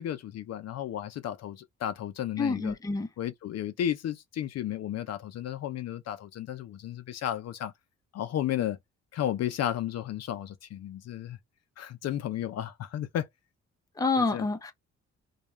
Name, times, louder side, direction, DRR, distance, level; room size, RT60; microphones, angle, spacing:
voice 1, 0.0-2.7 3.2-7.7 8.1-8.8 9.1-11.4 11.8-13.3 14.2-14.4, left 11 dB, 55° left, 0.5 m, -33 dB
voice 2, 2.4-3.1 14.0-14.7, left 3 dB, 10° left, 0.5 m, -28 dB
2.3 x 2.2 x 3.0 m
cardioid pair, 90°, 30 cm